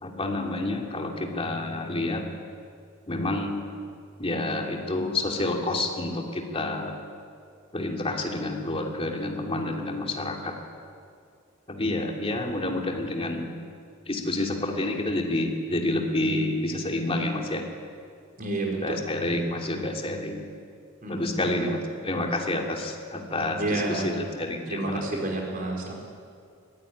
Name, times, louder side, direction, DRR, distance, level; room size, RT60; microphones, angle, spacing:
voice 1, 0.0-2.2 3.1-3.6 4.2-7.0 7.7-10.5 11.7-13.4 14.1-17.6 18.8-20.5 21.1-25.2, left 2 dB, 25° left, 1 dB, 2.8 m, -29 dB
voice 2, 18.4-18.8 21.0-21.4 23.6-24.1 24.7-25.9, right 2 dB, 40° right, -1 dB, 4.8 m, -29 dB
23.5 x 15.0 x 10.0 m, 2.3 s
head